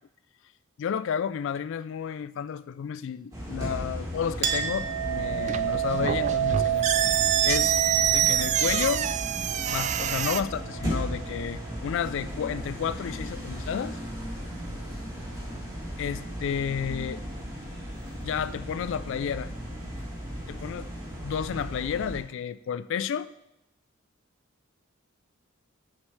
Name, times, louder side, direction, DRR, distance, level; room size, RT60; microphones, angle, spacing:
voice 1, 0.8-6.9 7.4-7.8 8.1-9.1 9.7-14.0 16.0-17.2 18.2-19.5 20.5-20.9 21.2-23.3, left 7 dB, 65° left, 15 dB, 0.3 m, -31 dB
sound 1, 3.3-22.2, equal, 15° right, 3.5 m, -36 dB
Chink clink, 4.4-11.5, right 11 dB, 55° right, 0.9 m, -30 dB
sound 2, 5.4-10.4, right 9 dB, 35° right, 0.3 m, -26 dB
14.0 x 6.3 x 3.2 m, 0.87 s
head